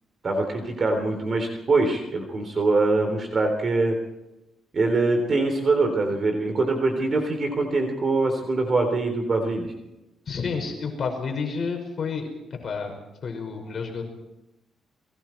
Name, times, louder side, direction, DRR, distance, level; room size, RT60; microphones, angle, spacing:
voice 1, 0.2-4.0 4.7-9.7, right 3 dB, 40° right, 5 dB, 3.6 m, -23 dB
voice 2, 10.3-12.3 12.6-12.9 13.2-14.0, left 5 dB, 45° left, 3 dB, 5.4 m, -30 dB
30.0 x 22.0 x 4.6 m, 0.94 s
cardioid pair, 120°, 0 cm